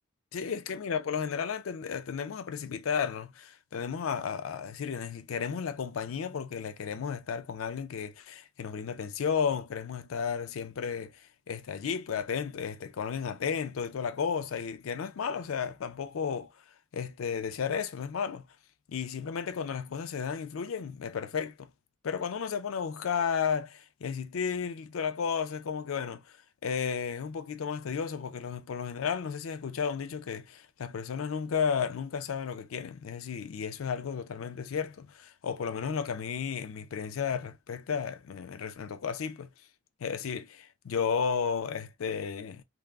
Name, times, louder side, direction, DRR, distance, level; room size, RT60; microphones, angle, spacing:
voice 1, 0.3-11.1 11.5-16.5 16.9-18.5 18.9-21.7 22.0-26.2 26.6-39.5 40.0-42.6, left 6 dB, 85° left, 0.4 m, -33 dB
3.4 x 2.0 x 2.2 m
head